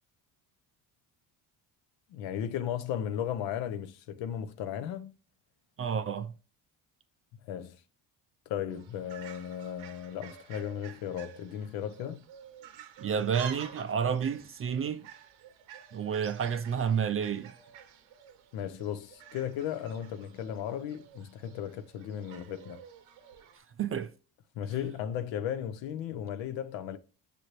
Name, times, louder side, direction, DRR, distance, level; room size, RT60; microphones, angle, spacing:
voice 1, 2.1-5.1 7.4-7.8 8.5-12.2 18.5-22.8 24.5-27.0, left 9 dB, 75° left, 0.7 m, -35 dB
voice 2, 5.8-6.3 13.0-15.0 15.9-17.5 23.8-24.1, right 7 dB, 30° right, 0.4 m, -30 dB
Fowl, 8.7-23.6, right 8 dB, 75° right, 0.8 m, -50 dB
6.7 x 2.6 x 3.0 m
supercardioid pair, 70°, 47 cm